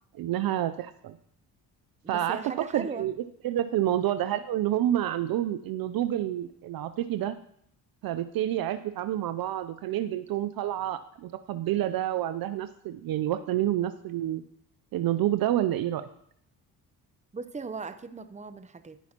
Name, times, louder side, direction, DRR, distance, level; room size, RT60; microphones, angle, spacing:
voice 1, 0.1-1.2 2.1-3.1 3.4-7.3 8.0-14.4 14.9-16.0, right 12 dB, 55° right, 12 dB, 0.5 m, -28 dB
voice 2, 2.0-3.1 3.6-3.8 17.3-19.0, right 4 dB, 15° right, 10 dB, 0.7 m, -38 dB
14.5 x 5.7 x 2.9 m, 0.71 s
hypercardioid pair, 50°, 43 cm